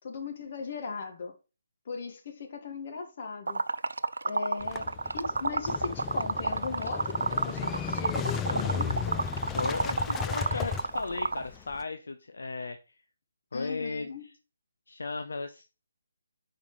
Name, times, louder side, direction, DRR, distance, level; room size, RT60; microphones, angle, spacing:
voice 1, 0.0-1.3 1.9-3.6 4.2-9.2 13.5-14.2, left 5 dB, 45° left, 1.9 m, -38 dB
Liquid, 3.5-11.5, right 3 dB, 75° right, 0.4 m, -30 dB
Motorcycle / Engine starting, 4.6-11.8, left 7 dB, 15° left, 0.4 m, -35 dB
voice 2, 8.5-12.9 13.5-14.1 14.9-15.7, left 3 dB, 70° left, 0.7 m, -36 dB
10.5 x 4.2 x 3.2 m
figure-of-eight pair, 145°, 0 cm